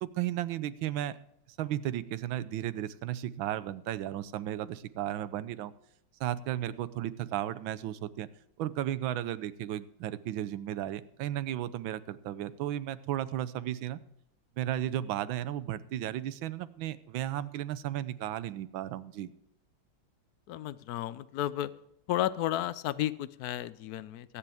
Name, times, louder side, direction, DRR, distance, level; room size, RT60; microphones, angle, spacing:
voice 1, 0.0-1.2 1.6-5.7 6.2-8.3 8.6-14.0 14.6-19.3, right 12 dB, 75° right, 16 dB, 1.5 m, -34 dB
voice 2, 20.5-21.7 22.1-24.4, left 13 dB, 75° left, 16 dB, 0.9 m, -33 dB
22.0 x 10.0 x 3.5 m, 0.77 s
omnidirectional pair, 2.2 m